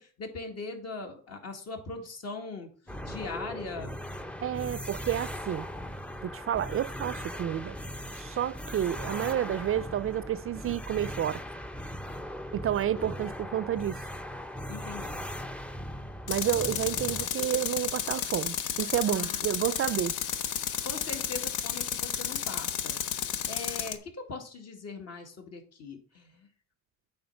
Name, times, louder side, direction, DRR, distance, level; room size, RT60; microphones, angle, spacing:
voice 1, 0.0-4.2 14.7-15.3 19.1-19.5 20.8-23.0 23.2-26.5, left 3 dB, 55° left, 2.0 m, -41 dB
sound 1, 2.9-17.3, equal, 5° left, 0.5 m, -39 dB
voice 2, 4.4-5.7 6.2-7.8 8.1-11.4 12.5-14.1 16.3-20.1, right 10 dB, 45° right, 0.4 m, -30 dB
Tools, 16.3-24.0, left 9 dB, 85° left, 0.8 m, -32 dB
8.7 x 3.7 x 5.7 m
cardioid pair, 90°, 30 cm